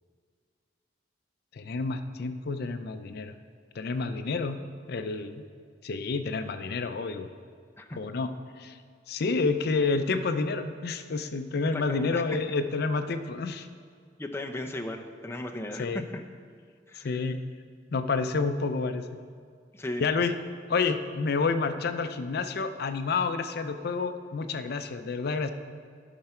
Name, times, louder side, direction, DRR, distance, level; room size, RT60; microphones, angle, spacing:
voice 1, 1.5-3.3 3.8-4.6 4.9-5.4 5.8-7.3 8.0-8.3 8.6-8.8 9.1-13.7 15.8-16.0 17.0-17.4 17.9-19.0 20.0-20.3 20.7-25.5, left 4 dB, 60° left, 9 dB, 0.5 m, -29 dB
voice 2, 11.6-12.4 14.2-16.2 16.9-17.2 19.7-20.1, left 1 dB, 15° left, 4 dB, 0.6 m, -36 dB
11.5 x 5.8 x 4.4 m, 2.1 s
head